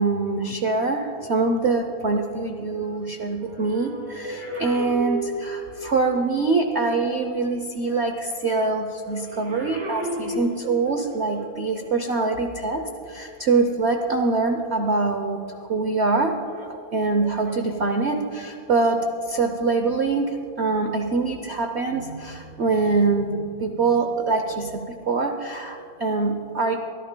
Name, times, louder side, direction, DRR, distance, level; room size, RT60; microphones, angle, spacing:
voice 1, 0.0-19.0 19.3-26.8, right 3 dB, 75° right, 5 dB, 0.6 m, -24 dB
sound 1, 3.2-6.0 9.1-11.0 11.9-12.1, right 1 dB, 25° right, 2.3 m, -33 dB
23.0 x 13.5 x 2.2 m, 2.7 s
omnidirectional pair, 2.1 m